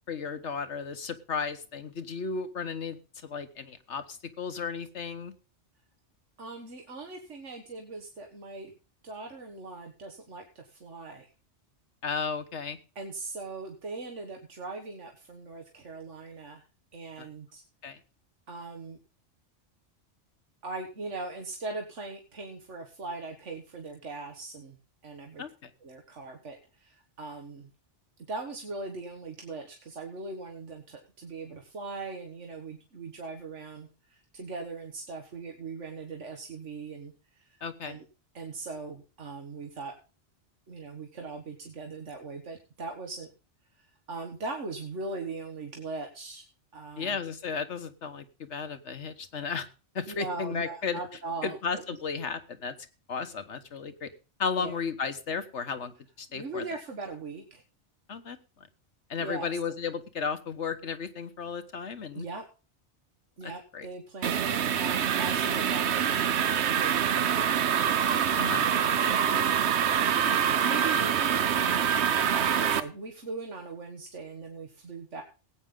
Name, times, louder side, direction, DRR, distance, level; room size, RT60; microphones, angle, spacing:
voice 1, 0.1-3.0 3.2-5.3 12.0-12.8 17.2-17.3 17.8-18.0 25.4-25.7 37.6-38.0 47.0-49.7 49.9-51.0 51.4-52.7 53.1-54.1 54.4-56.7 58.1-58.7 59.1-62.2 63.4-63.9 68.4-68.7, left 5 dB, 75° left, 9 dB, 1.6 m, -34 dB
voice 2, 6.4-8.7 9.0-11.3 13.0-16.6 16.9-17.6 18.5-19.0 20.6-24.8 25.0-25.4 25.8-27.7 28.3-37.6 37.8-38.0 38.3-39.9 40.7-43.3 43.8-46.4 46.7-47.2 50.1-51.8 54.5-54.8 56.3-57.6 59.2-59.5 62.1-62.4 63.4-67.8 68.6-70.1 70.3-75.2, right 3 dB, 90° right, 3 dB, 1.9 m, -40 dB
sound 1, 64.2-72.8, right 8 dB, 70° right, 1.1 m, -25 dB
18.0 x 8.8 x 3.8 m, 0.33 s
omnidirectional pair, 1.2 m